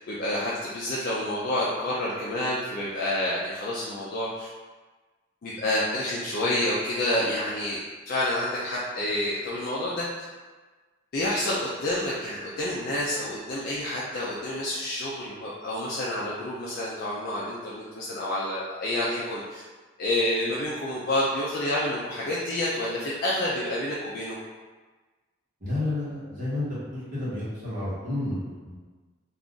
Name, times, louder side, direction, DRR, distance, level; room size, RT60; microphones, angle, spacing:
voice 1, 0.1-4.5 5.4-7.8 8.1-10.2 11.1-19.6 20.0-24.4, left 1 dB, 50° left, -6 dB, 0.4 m, -28 dB
voice 2, 25.6-28.7, left 2 dB, 40° right, -11 dB, 1.0 m, -31 dB
2.4 x 2.4 x 3.7 m, 1.3 s
head